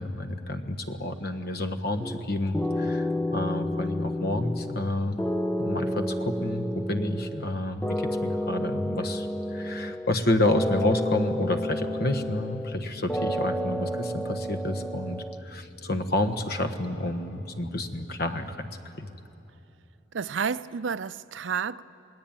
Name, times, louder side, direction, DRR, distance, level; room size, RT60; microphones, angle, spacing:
voice 1, 0.0-5.2 5.6-19.1, left 1 dB, 55° left, 1.4 m, -29 dB
sound 1, 2.0-2.2 2.5-4.9 5.2-7.5 7.8-10.2 10.5-12.8 13.1-15.4, left 1 dB, 10° left, 0.7 m, -30 dB
voice 2, 20.1-21.8, right 6 dB, 75° right, 0.5 m, -30 dB
28.5 x 19.5 x 9.0 m
head